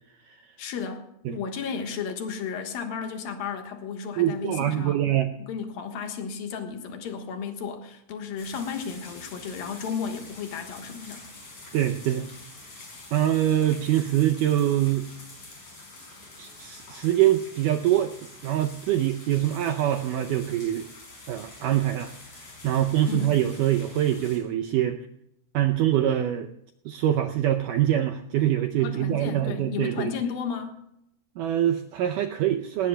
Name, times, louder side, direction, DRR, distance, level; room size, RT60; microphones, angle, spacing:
voice 1, 0.6-5.1 5.4-11.2 23.1-23.4 28.8-30.8, left 6 dB, 70° left, 5 dB, 3.0 m, -33 dB
voice 2, 4.2-5.3 11.7-12.3 13.1-15.1 16.4-18.1 18.4-20.9 21.3-22.1 22.6-25.0 25.5-26.5 26.9-30.1 31.4-32.9, right 12 dB, 80° right, 5 dB, 1.9 m, -24 dB
sound 1, 8.4-24.4, left 2 dB, 40° left, 6.6 m, -46 dB
18.5 x 17.5 x 2.3 m, 0.78 s
omnidirectional pair, 4.5 m